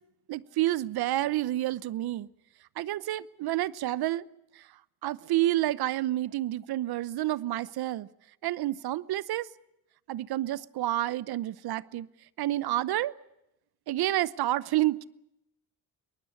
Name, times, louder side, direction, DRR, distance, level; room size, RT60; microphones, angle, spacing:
voice 1, 0.3-2.3 2.8-4.2 4.6-4.7 5.0-8.1 8.4-9.5 10.1-12.1 12.4-13.1 13.9-15.0, right 15 dB, 70° right, 0.9 m, -29 dB
23.0 x 20.0 x 8.4 m
supercardioid pair, 70°, 39 cm